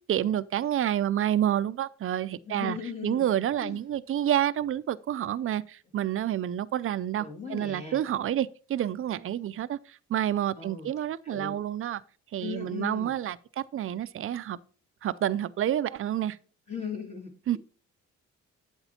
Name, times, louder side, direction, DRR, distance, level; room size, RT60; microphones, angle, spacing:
voice 1, 0.1-2.8 3.0-12.0 12.3-14.6 15.0-16.4 17.5-17.6, right 11 dB, 45° right, 0.5 m, -29 dB
voice 2, 2.4-3.2 3.6-3.8 7.2-8.0 10.6-10.9 11.2-11.6 12.4-13.1 16.7-17.6, left 6 dB, 20° left, 2.2 m, -38 dB
8.0 x 8.0 x 2.8 m
cardioid pair, 90°, 30 cm